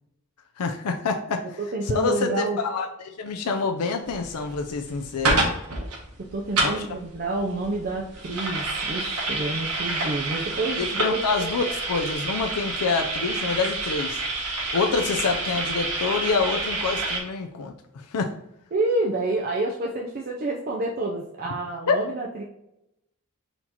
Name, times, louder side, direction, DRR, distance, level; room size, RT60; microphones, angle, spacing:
voice 1, 0.6-1.6 1.9-5.4 6.6-6.8 10.8-14.2 14.7-18.3 21.9-22.0, left 4 dB, 90° left, 4 dB, 0.5 m, -26 dB
voice 2, 1.6-2.6 6.3-11.5 18.7-22.4, right 2 dB, 40° right, 0 dB, 0.5 m, -28 dB
sound 1, 4.1-17.2, right 2 dB, 75° right, 1.4 m, -28 dB
4.4 x 2.9 x 3.9 m, 0.84 s
head